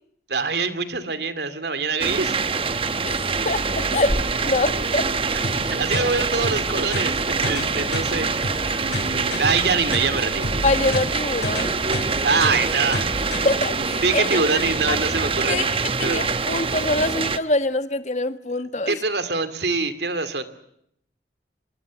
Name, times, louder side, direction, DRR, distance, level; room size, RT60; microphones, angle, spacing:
voice 1, 0.3-2.5 5.6-10.4 12.2-13.1 13.4-15.6 16.0-16.3 18.9-20.4, right 4 dB, 70° right, 2.5 m, -25 dB
sound 1, 2.0-17.4, right 4 dB, 30° right, 1.0 m, -25 dB
voice 2, 3.0-5.1 10.6-11.8 13.4-14.6 14.9-15.0 15.5-15.7 16.0-19.0, left 2 dB, 40° left, 1.4 m, -25 dB
sound 2, 4.1-11.4 11.7-11.8, equal, 10° left, 1.2 m, -37 dB
sound 3, 5.4-13.4, left 1 dB, 80° left, 6.2 m, -31 dB
25.5 x 23.5 x 7.5 m
head